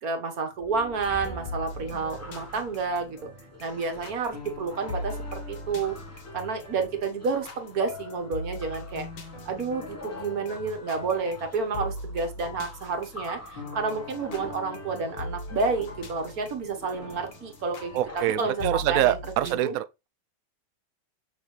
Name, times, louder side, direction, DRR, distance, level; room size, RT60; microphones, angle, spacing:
voice 1, 0.0-3.3 3.6-5.9 6.3-9.1 9.5-19.8, right 4 dB, 50° right, 1.8 m, -30 dB
sound 1, 0.6-19.3, left 1 dB, 10° left, 0.9 m, -47 dB
sound 2, 0.7-19.3, left 4 dB, 85° left, 3.1 m, -45 dB
sound 3, 1.0-19.5, left 1 dB, 65° left, 2.1 m, -40 dB
voice 2, 17.9-20.1, right 13 dB, 85° right, 0.7 m, -25 dB
6.5 x 6.1 x 3.2 m
omnidirectional pair, 2.0 m